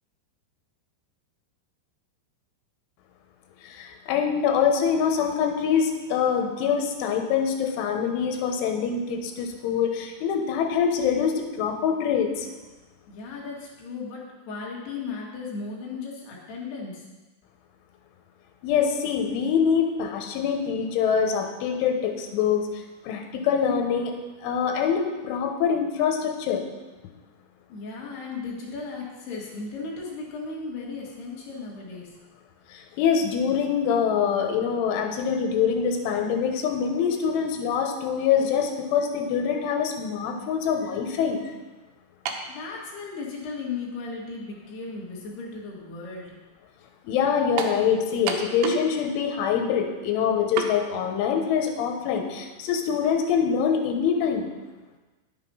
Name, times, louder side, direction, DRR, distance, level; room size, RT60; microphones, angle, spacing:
voice 1, 3.6-12.5 18.6-24.2 24.4-26.6 32.7-41.6 47.1-54.5, left 7 dB, 90° left, 4 dB, 3.6 m, -24 dB
voice 2, 13.1-17.0 27.7-32.1 42.5-46.3, left 4 dB, 65° left, -3 dB, 3.9 m, -36 dB
sound 1, 42.3-42.5 43.4-43.5 47.6-47.8 48.3-48.9 49.2-49.3 50.6-50.8, right 7 dB, 80° right, 3.2 m, -29 dB
10.5 x 8.1 x 5.6 m, 1.2 s
omnidirectional pair, 5.4 m